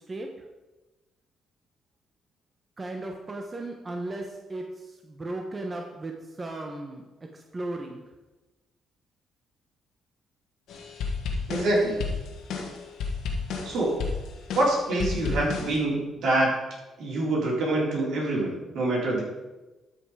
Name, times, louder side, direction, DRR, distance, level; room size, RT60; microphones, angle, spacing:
voice 1, 2.8-4.6 5.1-6.1 6.4-7.0 7.5-8.0, right 2 dB, 30° right, 2 dB, 1.1 m, -35 dB
sound 1, 10.7-15.8, left 4 dB, 80° left, 1.6 m, -32 dB
voice 2, 11.5-12.1 13.6-14.1 14.5-16.5 17.0-19.2, right 1 dB, 75° right, -3 dB, 3.8 m, -25 dB
12.5 x 5.7 x 4.9 m, 1.1 s
cardioid pair, 90°, 0 cm